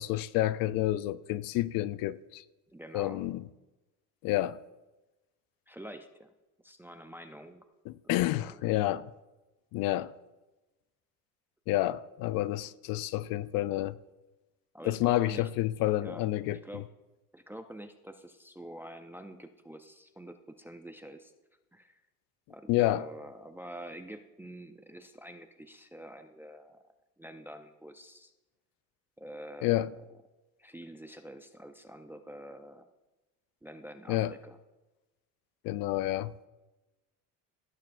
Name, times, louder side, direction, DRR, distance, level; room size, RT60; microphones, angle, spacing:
voice 1, 0.0-2.4 2.9-3.4 4.2-4.6 7.9-9.1 9.7-10.1 11.7-14.0 14.9-16.8 22.7-23.0 29.6-29.9 34.1-34.3 35.6-36.3, left 15 dB, 65° left, 0.5 m, -29 dB
voice 2, 2.7-3.2 5.7-6.3 6.6-7.7 8.0-8.6 14.7-15.5 16.0-16.8 17.3-21.3 21.7-22.0 22.5-26.8 27.2-28.3 29.2-30.0 30.6-32.9 33.6-34.6, right 1 dB, 5° right, 0.3 m, -47 dB
17.0 x 8.8 x 2.5 m
cardioid pair, 140°, 37 cm